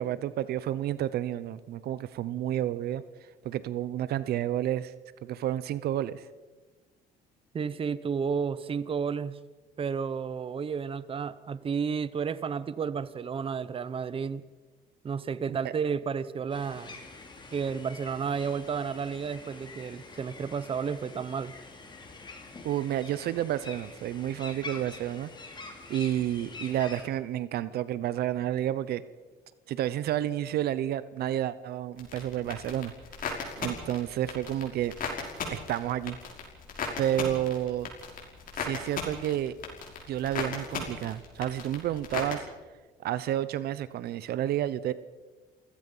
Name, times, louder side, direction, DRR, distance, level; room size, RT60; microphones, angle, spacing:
voice 1, 0.0-3.0 3.4-4.9 5.2-6.2 15.5-15.7 22.6-25.3 25.9-29.0 29.7-32.9 33.6-34.9 35.5-36.2 37.0-37.9 38.6-39.6 40.1-42.5 43.0-44.9, right 12 dB, 70° right, 16 dB, 0.8 m, -30 dB
voice 2, 7.5-9.4 9.8-14.4 15.0-17.0 17.5-21.5, right 6 dB, 35° right, 16 dB, 0.9 m, -32 dB
sound 1, 16.5-27.0, left 3 dB, 25° left, 3.6 m, -46 dB
sound 2, 32.0-42.3, left 5 dB, 55° left, 5.7 m, -37 dB
29.0 x 16.0 x 5.6 m, 1.3 s
cardioid pair, 110°, 17 cm